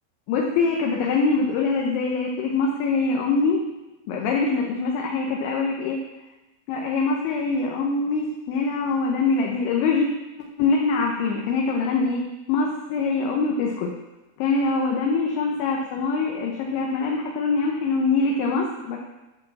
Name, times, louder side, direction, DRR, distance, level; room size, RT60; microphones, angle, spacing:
voice 1, 0.3-3.6 4.1-6.0 6.7-10.1 10.6-12.2 12.5-13.9 14.4-19.0, left 4 dB, 75° left, -1 dB, 3.0 m, -23 dB
10.5 x 4.4 x 7.0 m, 1.1 s
omnidirectional pair, 5.9 m